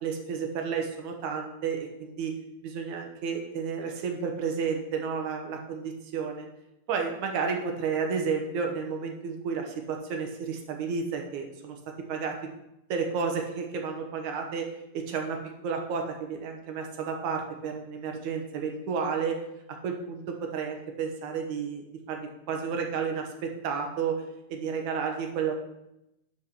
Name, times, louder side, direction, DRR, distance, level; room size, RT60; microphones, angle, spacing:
voice 1, 0.0-2.4 2.6-6.5 6.9-11.8 12.1-12.4 12.9-14.7 14.9-15.4 15.6-19.4 19.8-24.2 24.5-25.6, right 6 dB, 65° right, 3 dB, 2.2 m, -31 dB
10.5 x 4.6 x 6.2 m, 0.88 s
omnidirectional pair, 4.4 m